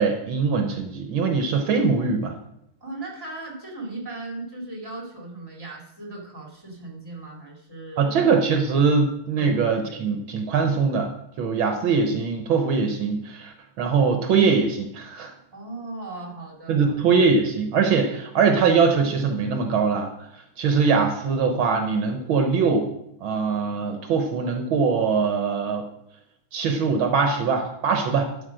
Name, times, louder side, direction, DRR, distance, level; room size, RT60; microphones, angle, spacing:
voice 1, 0.0-2.4 8.0-11.1 11.4-15.3 16.7-20.3 20.6-22.9 23.2-25.8 26.5-28.3, right 5 dB, 70° right, 4 dB, 1.7 m, -22 dB
voice 2, 2.8-8.3 9.4-9.6 15.5-17.2, right 2 dB, 10° right, -2 dB, 2.7 m, -37 dB
12.0 x 6.2 x 4.9 m, 0.78 s
omnidirectional pair, 2.3 m